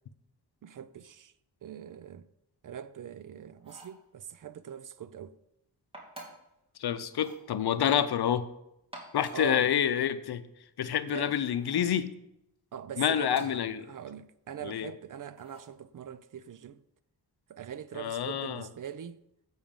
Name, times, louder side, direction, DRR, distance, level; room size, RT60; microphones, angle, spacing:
voice 1, 0.6-1.3 1.6-2.2 2.6-5.4 9.3-9.7 11.1-11.3 12.7-13.6 13.9-16.8 17.5-19.2, right 9 dB, 50° right, 0.5 m, -42 dB
sound 1, 3.6-4.0 5.9-6.5 7.1-7.5 8.8-9.5 11.6-11.9 13.2-13.7 15.3-15.7, right 1 dB, 15° right, 2.6 m, -49 dB
voice 2, 6.8-8.5 9.1-10.4 10.8-12.1 13.0-13.8 14.6-14.9 17.9-18.7, left 9 dB, 70° left, 0.7 m, -28 dB
8.6 x 6.4 x 5.2 m
cardioid pair, 90°, 40 cm